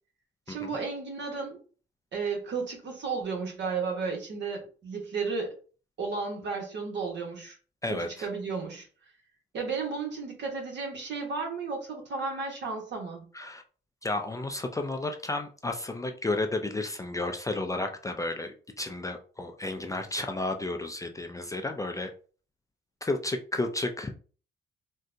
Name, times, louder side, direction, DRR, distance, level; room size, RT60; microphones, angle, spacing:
voice 1, 0.5-1.6 2.1-5.5 6.0-7.6 8.2-8.9 9.5-13.2, right 4 dB, 65° right, 1 dB, 1.2 m, -33 dB
voice 2, 7.8-8.3 13.3-13.6 14.0-22.1 23.0-24.1, left 2 dB, 15° left, 5 dB, 0.3 m, -32 dB
3.7 x 2.2 x 2.6 m, 0.40 s
cardioid pair, 90°, 20 cm